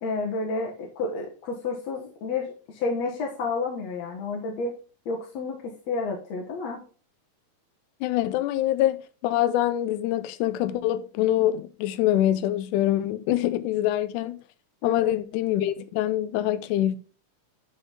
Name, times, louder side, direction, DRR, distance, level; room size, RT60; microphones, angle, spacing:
voice 1, 0.0-4.7 5.1-6.8 14.8-15.1, left 3 dB, 65° left, 2.1 m, -30 dB
voice 2, 8.0-9.0 9.2-14.4 14.8-17.0, left 13 dB, 80° left, 2.0 m, -24 dB
9.9 x 4.0 x 3.6 m
omnidirectional pair, 3.7 m